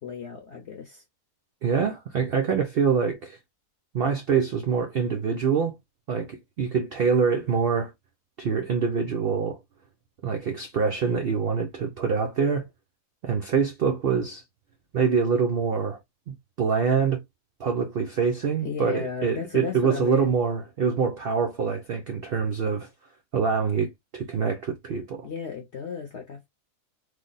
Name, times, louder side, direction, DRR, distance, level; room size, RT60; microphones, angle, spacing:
voice 1, 0.0-1.0 18.6-20.3 25.2-26.5, left 6 dB, 55° left, 0.9 m, -34 dB
voice 2, 1.6-3.4 3.9-5.8 6.1-7.9 8.4-9.6 10.2-12.7 13.2-14.4 14.9-16.0 16.3-17.2 17.6-22.9 23.3-25.3, right 6 dB, 90° right, 0.5 m, -25 dB
3.2 x 2.1 x 3.8 m
omnidirectional pair, 1.7 m